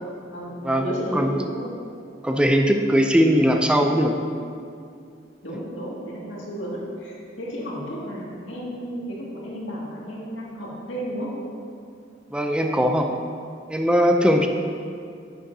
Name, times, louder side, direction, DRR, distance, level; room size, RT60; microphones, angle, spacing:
voice 1, 0.3-1.7 5.4-11.3, equal, 85° left, -5 dB, 2.1 m, -33 dB
voice 2, 2.2-4.1 12.3-13.1 13.7-14.5, equal, 5° right, 3 dB, 0.4 m, -19 dB
9.8 x 7.9 x 2.7 m, 2.4 s
head